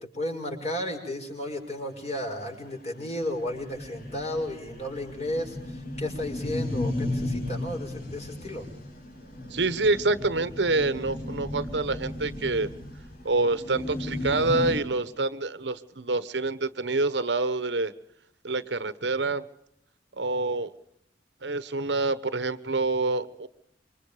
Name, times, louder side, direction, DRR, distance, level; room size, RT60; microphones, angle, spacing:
voice 1, 0.0-8.6, left 1 dB, 35° left, 3 dB, 5.9 m, -33 dB
sound 1, 2.1-2.2 2.5-2.6 2.9-3.0 3.2-14.8, left 1 dB, 55° left, 4.9 m, -35 dB
voice 2, 9.5-12.7 13.2-17.9 18.4-19.5 20.2-20.7 21.4-23.5, right 3 dB, 70° right, 14 dB, 1.2 m, -27 dB
27.0 x 24.5 x 5.0 m, 0.74 s
head